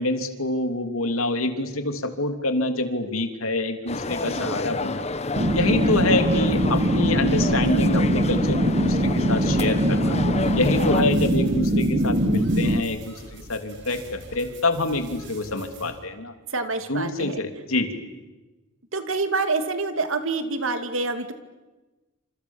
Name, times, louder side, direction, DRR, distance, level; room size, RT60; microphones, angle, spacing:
voice 1, 0.0-5.1 5.5-10.2 10.6-16.3 16.9-18.2, left 2 dB, 85° left, 7 dB, 3.0 m, -26 dB
sound 1, 3.9-11.0, left 3 dB, 30° left, 1.1 m, -29 dB
voice 2, 4.3-4.6 10.7-11.0 16.5-17.4 18.9-21.3, right 3 dB, 75° right, 8 dB, 2.6 m, -27 dB
sound 2, 5.4-12.8, right 1 dB, 40° right, 1.4 m, -22 dB
sound 3, 10.4-15.9, right 2 dB, 60° right, 6.9 m, -44 dB
28.5 x 27.5 x 7.3 m, 1.2 s
head